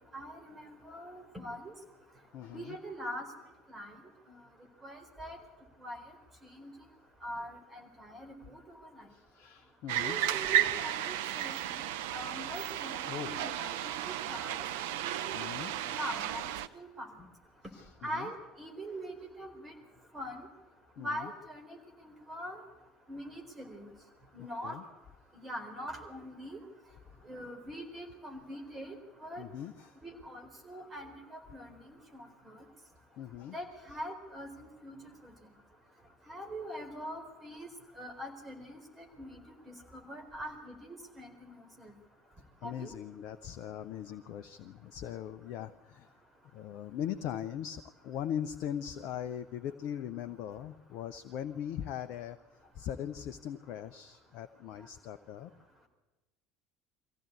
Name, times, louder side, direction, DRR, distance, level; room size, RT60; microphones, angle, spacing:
voice 1, 0.1-1.7 2.5-3.3 3.7-4.0 4.3-4.4 4.8-5.4 5.8-6.0 6.4-6.7 7.2-9.1 10.0-11.8 12.1-13.7 14.0-17.1 18.0-19.7 20.1-20.4 21.0-22.6 23.1-23.9 24.3-24.8 25.3-26.6 27.2-29.0 29.2-29.4 30.0-32.6 33.5-35.0 35.2-35.3 36.3-37.7 38.0-41.9 42.6-42.9, equal, 20° right, 4 dB, 4.2 m, -43 dB
voice 2, 2.3-2.8 9.1-10.2 13.1-13.5 15.3-15.7 17.7-18.3 21.0-21.3 24.4-24.8 29.4-30.0 33.2-33.6 42.6-46.1 46.5-52.4 52.7-55.5, left 10 dB, 50° left, 9 dB, 0.7 m, -40 dB
sound 1, 9.9-16.7, right 11 dB, 65° right, 0.7 m, -33 dB
23.0 x 15.5 x 8.4 m, 1.1 s
figure-of-eight pair, 65°, 0 cm